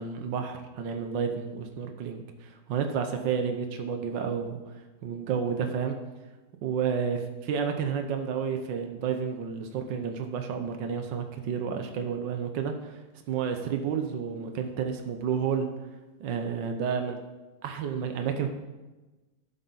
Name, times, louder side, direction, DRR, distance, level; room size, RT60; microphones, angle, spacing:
voice 1, 0.0-4.6 5.0-6.0 6.6-7.2 7.5-13.0 13.3-15.7 16.2-17.2 17.6-18.5, right 7 dB, 80° right, 5 dB, 1.6 m, -30 dB
12.0 x 11.5 x 4.1 m, 1.1 s
omnidirectional pair, 1.9 m